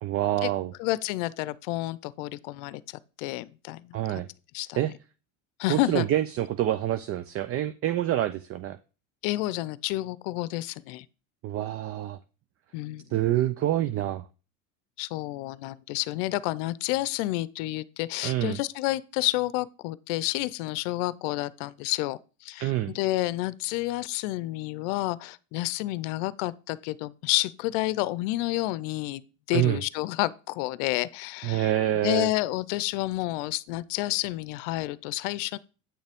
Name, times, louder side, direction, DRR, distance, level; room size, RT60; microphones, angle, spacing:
voice 1, 0.0-0.7 3.9-4.3 4.8-4.9 5.7-8.8 11.4-12.2 13.1-14.2 18.2-18.6 22.6-22.9 29.5-29.8 31.4-32.3, right 13 dB, 40° right, 0.5 m, -26 dB
voice 2, 0.8-4.2 4.5-4.8 5.6-6.1 9.2-11.1 12.7-13.0 15.0-29.2 29.5-31.7 32.0-35.6, left 18 dB, 75° left, 0.6 m, -30 dB
9.1 x 6.5 x 3.5 m
supercardioid pair, 105°, 37 cm